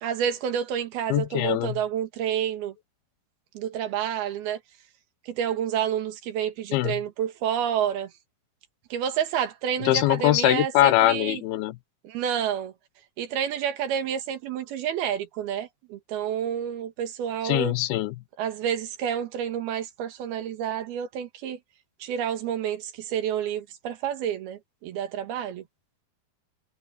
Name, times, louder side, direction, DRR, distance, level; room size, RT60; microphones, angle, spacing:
voice 1, 0.0-2.7 3.5-4.6 5.3-8.1 8.9-11.4 12.0-12.7 13.2-17.7 18.4-21.6 22.0-25.6, right 9 dB, 75° right, 3.5 m, -29 dB
voice 2, 1.1-1.8 6.7-7.0 9.8-11.8 17.4-18.2, left 16 dB, 80° left, 2.6 m, -22 dB
omnidirectional pair, 4.5 m